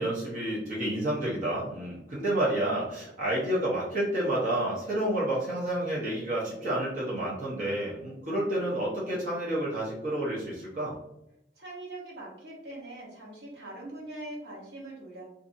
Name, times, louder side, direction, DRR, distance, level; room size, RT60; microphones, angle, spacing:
voice 1, 0.0-11.0, right 1 dB, 50° right, -6 dB, 0.8 m, -30 dB
voice 2, 11.5-15.2, right 1 dB, 70° right, -4 dB, 1.0 m, -42 dB
2.6 x 2.6 x 2.5 m, 0.84 s
head